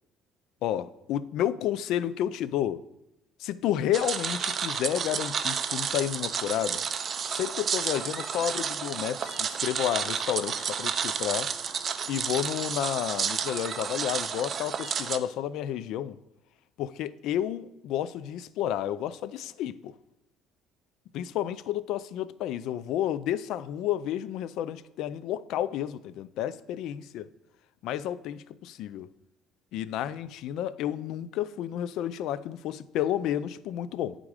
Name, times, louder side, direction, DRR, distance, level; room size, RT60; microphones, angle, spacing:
voice 1, 0.6-2.8 3.4-6.8 7.3-11.5 12.1-16.2 16.8-19.9 21.1-27.3 27.8-29.1 29.7-34.2, left 11 dB, 70° left, 0.3 m, -31 dB
sound 1, 3.9-15.2, right 7 dB, 35° right, 0.4 m, -31 dB
9.5 x 3.7 x 4.8 m
cardioid pair, 145°, 0 cm